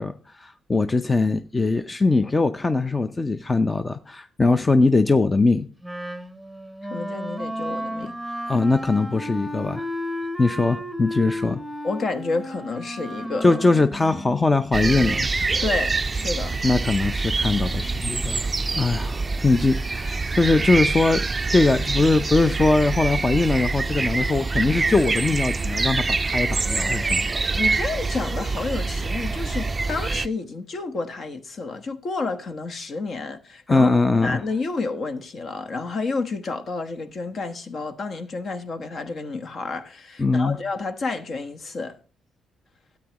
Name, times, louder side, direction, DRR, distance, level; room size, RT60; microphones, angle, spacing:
voice 1, 0.0-5.7 8.5-9.8 10.4-11.6 13.4-15.3 16.6-21.2 21.5-27.4 33.7-34.4 40.2-40.6, left 3 dB, 20° left, 0.6 m, -21 dB
Wind instrument woodwind instrument, 5.8-15.3, equal, ahead, 1.0 m, -33 dB
voice 2, 6.8-8.2 11.8-13.6 15.6-16.6 27.6-42.0, left 3 dB, 50° left, 1.2 m, -30 dB
sound 1, 14.7-30.3, right 3 dB, 25° right, 0.4 m, -25 dB
13.0 x 8.8 x 3.0 m
cardioid pair, 90°, 0 cm